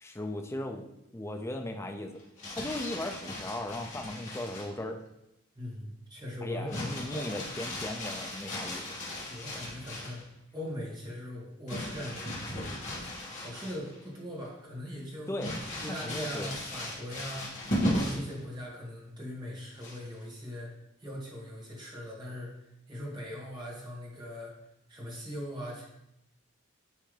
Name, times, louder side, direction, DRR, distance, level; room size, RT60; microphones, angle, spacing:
voice 1, 0.0-2.2 2.5-5.0 6.4-8.8 15.3-15.6 16.0-16.5, left 1 dB, 15° left, 4 dB, 0.4 m, -37 dB
Crumpling crinkling, 2.2-4.8 6.7-10.2 11.7-14.0 14.4-14.5 15.4-18.3 19.8-20.2, left 1 dB, 35° left, 1.9 m, -36 dB
voice 2, 5.5-7.4 9.2-10.2 10.5-12.8 13.3-15.4 15.8-17.5 17.9-20.7 21.0-22.5 22.9-24.5 24.9-25.9, equal, 20° right, -4 dB, 1.6 m, -40 dB
9.8 x 3.4 x 3.3 m, 0.84 s
head